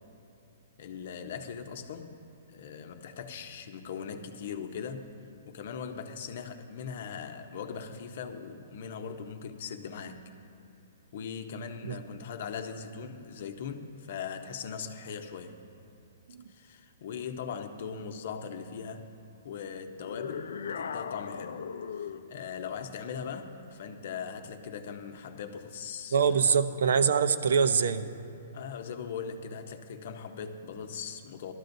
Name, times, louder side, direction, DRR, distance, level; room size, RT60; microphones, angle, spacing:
voice 1, 0.8-2.2 2.5-5.1 5.5-10.3 11.1-15.6 16.5-19.1 19.4-21.6 21.9-26.6 28.3-31.5, left 6 dB, 45° left, 7 dB, 0.8 m, -40 dB
sound 1, 20.0-22.3, left 7 dB, 80° left, 0.5 m, -37 dB
voice 2, 26.1-28.0, right 6 dB, 70° right, 12 dB, 0.7 m, -24 dB
20.0 x 12.5 x 2.7 m, 2.8 s
hypercardioid pair, 175°, 0 cm